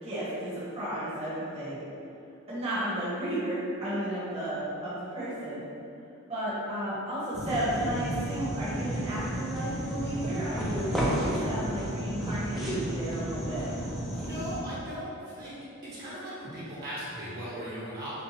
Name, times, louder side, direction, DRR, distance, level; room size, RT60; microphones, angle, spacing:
voice 1, 0.0-1.8 2.5-5.6 6.3-13.7, right 1 dB, 30° right, -12 dB, 1.2 m, -33 dB
sound 1, 7.3-14.6, right 1 dB, ahead, 0.5 m, -32 dB
voice 2, 14.1-15.6 15.8-18.2, equal, 45° right, -9 dB, 1.3 m, -38 dB
6.0 x 2.3 x 3.2 m, 2.7 s
head